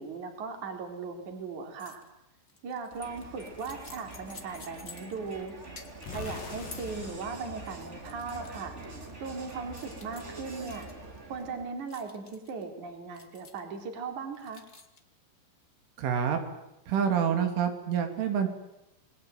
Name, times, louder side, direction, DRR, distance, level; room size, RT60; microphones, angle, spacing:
voice 1, 0.0-2.0 2.6-5.6 6.1-8.7 9.2-10.9 11.3-14.6, right 4 dB, 40° right, 5 dB, 4.7 m, -38 dB
sound 1, 1.8-2.1 2.4-5.5 5.8-6.2 6.7-6.9 7.5-8.6 9.0-9.1 9.7-10.9 11.9-12.6 13.1-13.8 14.3-15.0, left 4 dB, 35° left, 1.3 m, -51 dB
Crowd, 2.9-11.8, right 2 dB, 20° right, 1.9 m, -45 dB
sound 2, 6.0-8.9, left 7 dB, 55° left, 3.2 m, -44 dB
voice 2, 16.0-16.4 16.9-18.5, right 8 dB, 80° right, 6 dB, 5.1 m, -27 dB
27.5 x 21.5 x 9.2 m, 0.91 s
omnidirectional pair, 5.5 m